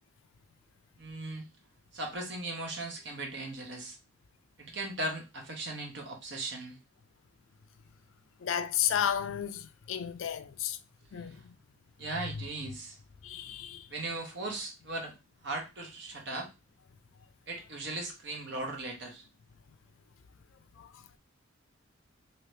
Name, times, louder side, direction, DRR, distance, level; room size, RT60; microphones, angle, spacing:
voice 1, 1.0-1.4 1.9-4.0 4.6-6.8 12.0-13.0 13.9-15.1 15.4-16.5 17.5-19.2, right 2 dB, 60° right, 1.0 m, -38 dB
voice 2, 8.4-10.8 11.1-11.5 13.2-13.9 20.8-20.9, left 9 dB, 85° left, 0.4 m, -33 dB
2.9 x 2.8 x 3.2 m
head